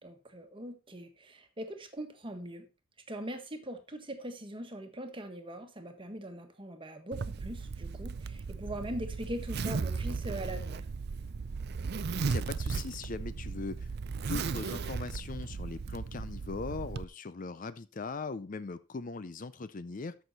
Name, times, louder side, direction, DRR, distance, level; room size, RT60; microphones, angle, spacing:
voice 1, 0.0-2.7 3.1-10.9, right 1 dB, 25° right, 1.4 m, -41 dB
Zipper (clothing), 7.1-17.0, right 4 dB, 55° right, 0.4 m, -36 dB
voice 2, 12.2-13.9 14.2-20.2, left 4 dB, 40° left, 0.5 m, -40 dB
13.0 x 6.3 x 4.1 m
head